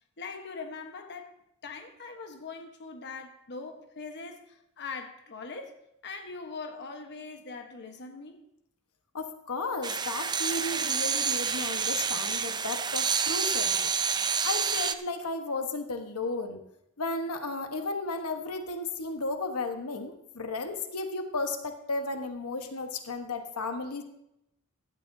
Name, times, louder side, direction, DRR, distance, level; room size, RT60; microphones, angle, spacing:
voice 1, 0.2-1.3 1.6-5.8 6.0-8.4, left 4 dB, 50° left, 1.2 m, -41 dB
voice 2, 9.1-13.8 14.4-16.6 17.0-24.0, left 3 dB, 80° left, 1.2 m, -34 dB
sound 1, 9.8-14.9, right 6 dB, 20° right, 0.5 m, -28 dB
16.0 x 12.5 x 2.7 m
head